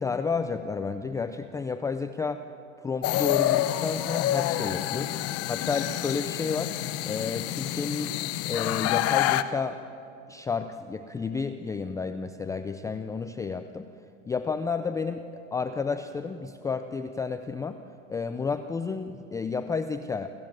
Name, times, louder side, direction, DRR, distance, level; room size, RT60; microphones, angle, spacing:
voice 1, 0.0-2.4 2.8-5.1 5.5-6.7 7.0-8.2 8.5-9.8 10.3-13.9 14.3-15.2 15.5-17.8 18.1-20.3, left 5 dB, 10° left, 9 dB, 0.5 m, -31 dB
sound 1, 3.0-9.4, left 14 dB, 35° left, 1.0 m, -28 dB
29.0 x 15.0 x 9.0 m, 2.6 s
hypercardioid pair, 120°, 40 cm